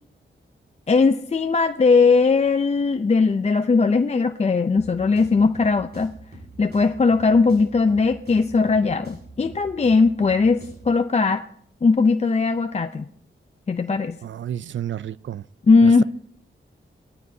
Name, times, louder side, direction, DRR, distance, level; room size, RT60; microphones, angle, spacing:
voice 1, 0.9-6.1 6.6-11.4 11.8-13.0 13.7-14.2 15.7-16.0, left 4 dB, 35° left, 0.5 m, -19 dB
sound 1, 4.8-11.0, right 1 dB, 50° right, 6.0 m, -44 dB
voice 2, 14.2-15.4 15.8-16.0, right 10 dB, 70° right, 0.4 m, -31 dB
19.0 x 13.5 x 2.7 m
wide cardioid pair, 85°, 20 cm